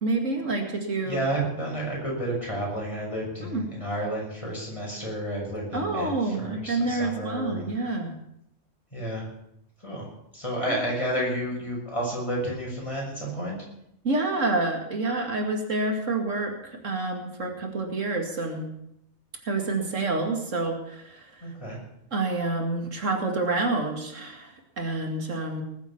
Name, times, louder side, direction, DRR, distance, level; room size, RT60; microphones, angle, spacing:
voice 1, 0.0-1.2 3.4-3.6 5.7-8.2 10.7-10.8 14.0-18.7 19.4-21.5 22.1-25.6, right 2 dB, 85° right, 2 dB, 2.6 m, -28 dB
voice 2, 1.0-7.7 8.9-9.3 9.8-10.1 10.3-13.6 21.4-21.8, right 1 dB, 25° left, -3 dB, 6.6 m, -31 dB
19.5 x 8.0 x 7.2 m, 0.78 s
omnidirectional pair, 1.3 m